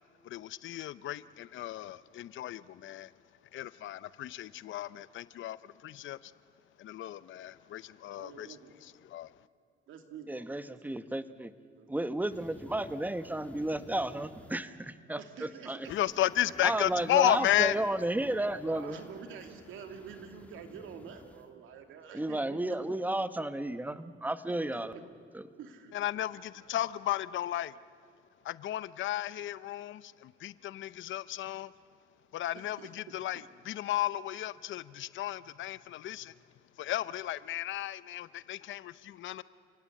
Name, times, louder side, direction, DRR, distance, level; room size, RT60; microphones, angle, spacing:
voice 1, 0.2-3.1 3.5-6.3 6.8-8.6 8.8-9.4 15.9-17.8 25.9-27.8 28.4-31.7 32.3-36.3 36.8-39.4, left 13 dB, 75° left, 17 dB, 0.7 m, -34 dB
voice 2, 8.2-8.7 9.9-11.1 11.8-12.1 15.2-16.0 17.3-17.5 18.2-18.4 18.6-22.8 24.9-25.0 25.6-26.0 32.8-33.2, right 7 dB, 80° right, 6 dB, 2.6 m, -48 dB
voice 3, 10.3-11.5 11.9-15.8 16.6-19.0 22.1-24.9 25.3-25.4, right 1 dB, 10° right, 12 dB, 1.1 m, -33 dB
sound 1, 12.3-14.5 15.9-21.4, left 1 dB, 5° left, 1.9 m, -52 dB
29.0 x 17.5 x 8.6 m, 2.3 s
cardioid pair, 90°, 20 cm